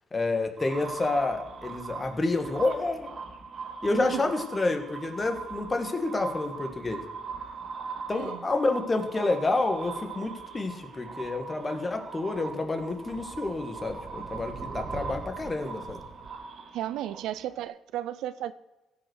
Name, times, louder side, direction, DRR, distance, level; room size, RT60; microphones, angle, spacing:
voice 1, 0.1-3.1 3.8-7.0 8.1-16.0, left 2 dB, 25° left, 1.7 m, -29 dB
sound 1, 0.6-17.6, right 5 dB, 50° right, 1.6 m, -40 dB
voice 2, 3.9-4.2 8.1-8.5 16.7-18.5, right 12 dB, 90° right, 0.4 m, -34 dB
16.0 x 5.5 x 6.3 m
cardioid pair, 90°, 0 cm